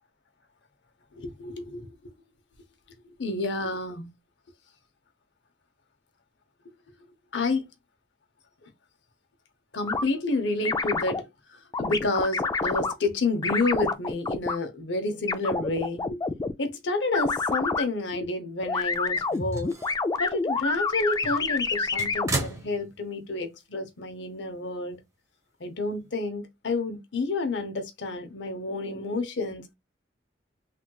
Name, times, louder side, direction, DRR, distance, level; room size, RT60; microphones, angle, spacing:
voice 1, 1.1-2.1 3.2-4.1 7.3-7.7 8.6-8.7 9.7-16.2 16.6-19.8 20.2-25.0 25.6-29.7, left 2 dB, 85° left, 0.8 m, -30 dB
sound 1, 9.9-10.0 10.6-11.2 11.7-12.9 13.4-14.6 15.3-16.5 17.1-17.8 18.6-22.4, left 4 dB, 20° left, 0.3 m, -27 dB
sound 2, 19.0-20.1 20.6-20.7 21.2-23.3 23.6-23.7 24.9-25.0, right 2 dB, 20° right, 0.8 m, -35 dB
3.4 x 2.9 x 2.2 m
head